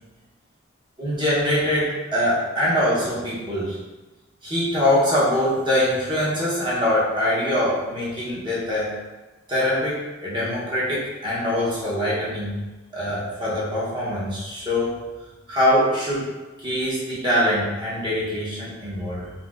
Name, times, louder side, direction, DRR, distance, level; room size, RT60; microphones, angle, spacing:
voice 1, 1.0-3.8 4.4-8.9 9.5-12.6 12.9-15.0 15.5-16.3 16.6-19.3, left 1 dB, 25° right, -8 dB, 0.8 m, -23 dB
4.2 x 2.2 x 2.4 m, 1.2 s
head